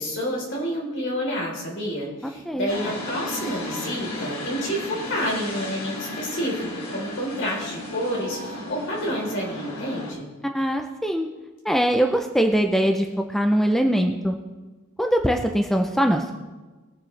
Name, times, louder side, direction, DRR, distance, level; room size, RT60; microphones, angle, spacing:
voice 1, 0.0-10.3, equal, 60° left, -3 dB, 3.8 m, -29 dB
sound 1, 2.7-10.1, left 2 dB, 80° left, 2.7 m, -34 dB
voice 2, 10.5-11.3 11.6-14.4 15.0-16.3, equal, ahead, 3 dB, 0.5 m, -22 dB
21.0 x 7.2 x 3.3 m, 1.3 s
head